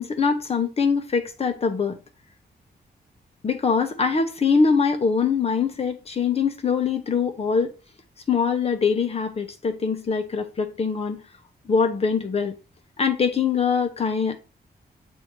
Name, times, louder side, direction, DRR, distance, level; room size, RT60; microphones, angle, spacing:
voice 1, 0.0-2.0 3.4-7.7 8.3-11.2 11.7-12.5 13.0-14.4, left 5 dB, 35° left, 1.0 m, -23 dB
8.0 x 2.8 x 4.6 m
wide cardioid pair, 170°, 17 cm